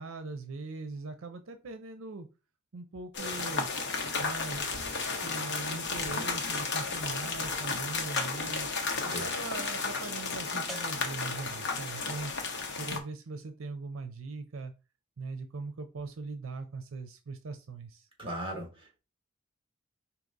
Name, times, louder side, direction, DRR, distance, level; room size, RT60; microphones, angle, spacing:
voice 1, 0.0-2.3 2.7-3.7 4.2-8.7 9.0-12.3 12.8-14.7 15.2-18.1, right 3 dB, 80° right, 0.6 m, -41 dB
sound 1, 3.1-13.0, left 4 dB, 60° left, 1.0 m, -33 dB
sound 2, 8.1-9.0 10.7-11.7, equal, ahead, 0.8 m, -46 dB
voice 2, 18.2-19.0, right 1 dB, 25° right, 1.9 m, -38 dB
4.8 x 2.8 x 3.9 m
head